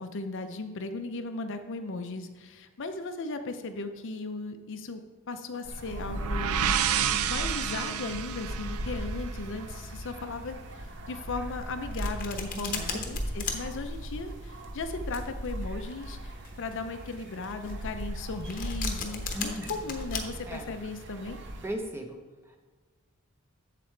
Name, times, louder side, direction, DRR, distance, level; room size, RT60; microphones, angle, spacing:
voice 1, 0.0-5.0 5.3-6.7 7.1-21.4, left 3 dB, 55° left, 7 dB, 0.6 m, -37 dB
sound 1, 5.6-21.7, equal, 55° right, 0.8 m, -38 dB
sound 2, 5.9-9.7, right 9 dB, 75° right, 0.4 m, -30 dB
Domestic sounds home sounds, 11.5-20.2, left 6 dB, 40° left, 0.9 m, -37 dB
voice 2, 12.5-13.0 19.3-19.8 20.5-20.7 21.6-22.6, equal, 10° right, 3 dB, 0.8 m, -37 dB
8.0 x 7.5 x 3.2 m, 1.3 s
head